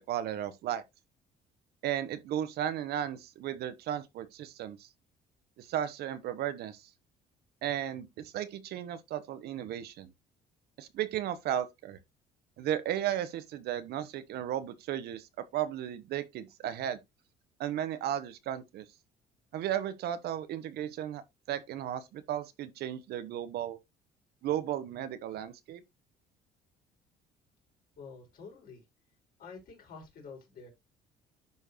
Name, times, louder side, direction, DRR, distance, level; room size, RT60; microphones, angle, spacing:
voice 1, 0.1-0.8 1.8-4.9 5.6-6.9 7.6-10.1 10.8-12.0 12.6-17.0 17.6-18.8 19.5-21.2 21.5-23.8 24.4-25.8, right 11 dB, 70° right, 1.1 m, -35 dB
voice 2, 28.0-28.9 29.4-30.7, left 4 dB, 60° left, 4.3 m, -48 dB
10.5 x 4.6 x 3.1 m
cardioid pair, 110°, 17 cm